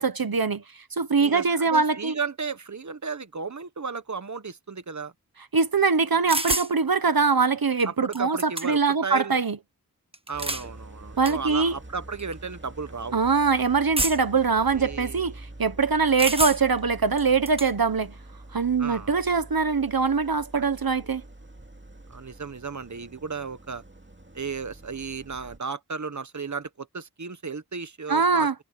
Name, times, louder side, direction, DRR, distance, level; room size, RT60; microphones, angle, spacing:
voice 1, 0.0-2.1 5.5-9.6 11.2-11.8 13.1-18.1 18.5-21.2 28.1-28.5, right 5 dB, 75° right, 1.1 m, -23 dB
voice 2, 1.2-5.1 7.8-9.4 10.3-13.2 14.7-15.3 18.8-19.2 20.5-20.7 21.0-21.1 22.1-23.8 24.3-28.5, right 5 dB, 55° right, 1.1 m, -34 dB
sound 1, 6.3-6.7 7.8-7.9 8.1-8.9 10.1-10.7 11.2-11.4 12.2-12.3 14.0-14.4 16.2-16.8 17.2-17.7, right 1 dB, 15° right, 1.4 m, -28 dB
Idling, 10.3-25.6, right 1 dB, 30° right, 2.4 m, -45 dB
wide cardioid pair, 40°, 35 cm